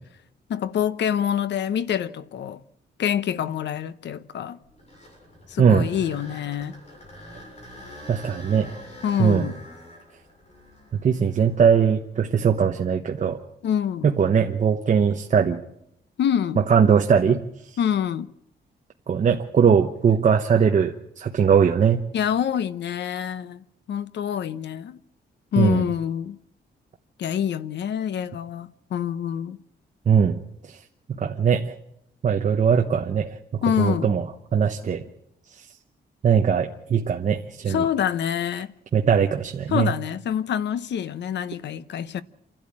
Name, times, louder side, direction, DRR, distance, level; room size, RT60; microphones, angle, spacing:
voice 1, 0.5-2.6 3.0-4.6 5.5-6.8 9.0-9.5 13.6-14.1 16.2-16.6 17.8-18.3 22.1-25.0 25.5-26.4 27.2-29.6 33.6-34.1 37.7-38.7 39.7-42.2, left 9 dB, 75° left, 0.9 m, -26 dB
sound 1, 4.6-12.7 13.3-13.4 14.1-14.2 17.8-18.1, left 1 dB, 35° left, 6.9 m, -45 dB
voice 2, 5.6-5.9 8.1-8.7 9.2-9.5 10.9-13.4 14.0-15.6 16.6-17.8 19.1-22.0 25.6-25.9 30.1-30.8 31.1-31.7 32.2-33.4 33.8-34.3 34.5-35.0 35.5-35.7 36.2-37.8 38.9-39.9, right 7 dB, 40° right, 1.1 m, -20 dB
28.0 x 12.0 x 8.6 m
wide cardioid pair, 160°, 18 cm